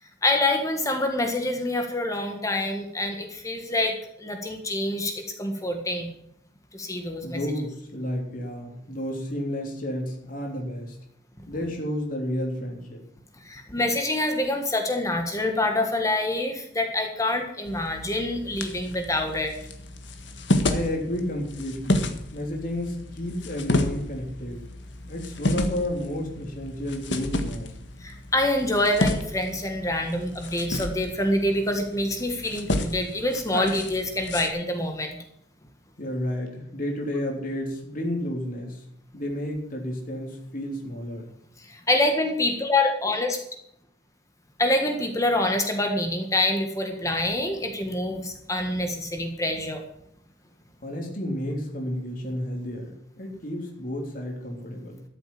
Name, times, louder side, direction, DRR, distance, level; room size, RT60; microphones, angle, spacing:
voice 1, 0.2-6.1 6.7-7.4 13.4-19.5 28.0-35.2 41.6-43.4 44.6-49.8, left 1 dB, 20° left, 4 dB, 1.6 m, -26 dB
voice 2, 7.2-11.0 11.5-13.0 20.7-24.6 25.1-27.7 36.0-38.8 39.1-41.3 50.8-55.0, left 1 dB, 50° left, 1 dB, 3.4 m, -31 dB
sound 1, 17.6-34.5, left 1 dB, 80° left, 1.7 m, -31 dB
14.0 x 7.7 x 8.5 m, 0.73 s
head